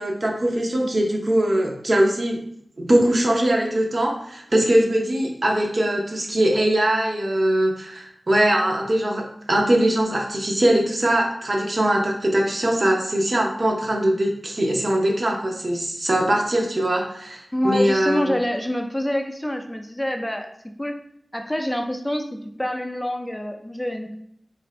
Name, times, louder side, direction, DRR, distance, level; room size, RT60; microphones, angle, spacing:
voice 1, 0.0-2.4 2.8-18.3, right 1 dB, 50° right, 0 dB, 0.8 m, -21 dB
voice 2, 17.5-20.5 20.8-21.0 21.3-24.2, left 1 dB, 10° left, 4 dB, 0.5 m, -26 dB
3.9 x 2.5 x 3.2 m, 0.69 s
wide cardioid pair, 55°, 0 cm